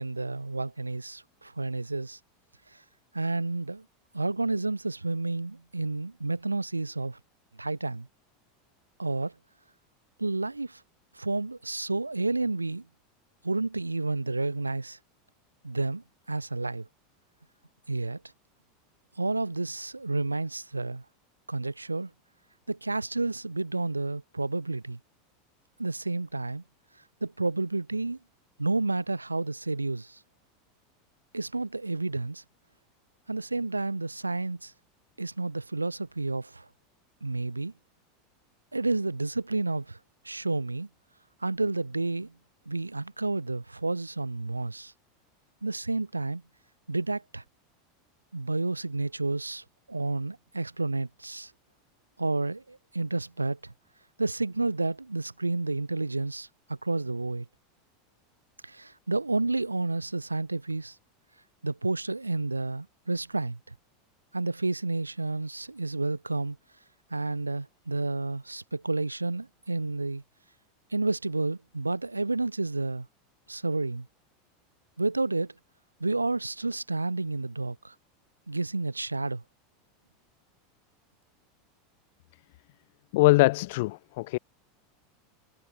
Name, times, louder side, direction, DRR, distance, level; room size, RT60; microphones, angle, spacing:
voice 1, 0.0-2.2 2.7-2.8 3.1-3.8 4.1-7.2 7.6-8.1 9.0-9.3 10.2-10.8 11.1-12.8 13.4-15.0 15.6-16.9 17.9-18.2 19.2-21.0 21.5-22.1 22.7-25.0 25.8-26.6 27.2-28.2 28.6-30.2 31.3-32.4 33.3-34.7 35.2-36.7 37.2-37.7 38.7-40.0 40.2-40.9 41.4-42.3 42.7-44.9 45.6-46.4 46.9-47.4 48.3-51.5 52.2-53.7 54.2-57.5 58.6-61.0 61.6-63.7 64.3-66.6 67.1-70.2 70.9-73.1 73.5-74.1 75.0-75.5 76.0-77.9 78.5-79.4, right 3 dB, 90° right, 1.9 m, -30 dB
voice 2, 83.1-84.4, left 21 dB, 55° left, 0.8 m, -22 dB
figure-of-eight pair, 85°, 0 cm